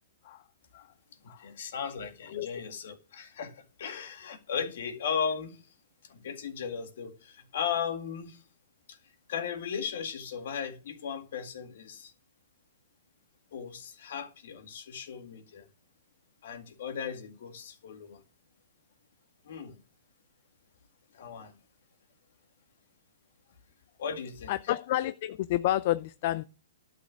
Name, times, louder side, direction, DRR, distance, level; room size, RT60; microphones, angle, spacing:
voice 1, 1.2-5.6 6.0-8.4 8.9-9.0 9.3-12.1 13.5-15.7 16.4-18.2 19.4-19.8 21.1-21.6 24.0-24.5, left 7 dB, 60° left, 2.0 m, -36 dB
voice 2, 24.5-26.4, left 14 dB, 45° left, 0.5 m, -30 dB
11.5 x 6.4 x 6.1 m
hypercardioid pair, 155°, 0 cm